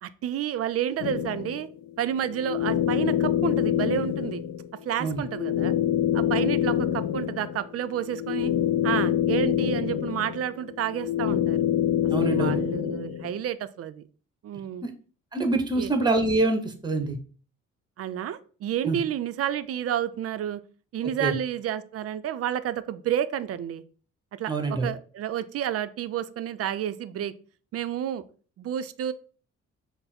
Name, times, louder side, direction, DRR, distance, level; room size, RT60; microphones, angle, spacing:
voice 1, 0.0-1.7 2.0-4.4 4.8-5.7 6.1-8.5 8.8-11.7 12.2-14.0 14.4-14.8 15.8-15.9 18.0-20.6 20.9-23.8 24.4-27.3 27.7-28.2 28.6-29.1, right 10 dB, 50° right, 13 dB, 0.4 m, -30 dB
sound 1, 1.0-13.4, left 10 dB, 65° left, 0.5 m, -26 dB
voice 2, 12.1-12.6 14.8-14.9 15.3-17.2 18.8-19.0 21.0-21.3 24.5-24.9, right 2 dB, 15° right, 6 dB, 0.9 m, -25 dB
5.4 x 2.0 x 4.2 m, 0.40 s
cardioid pair, 90°, 30 cm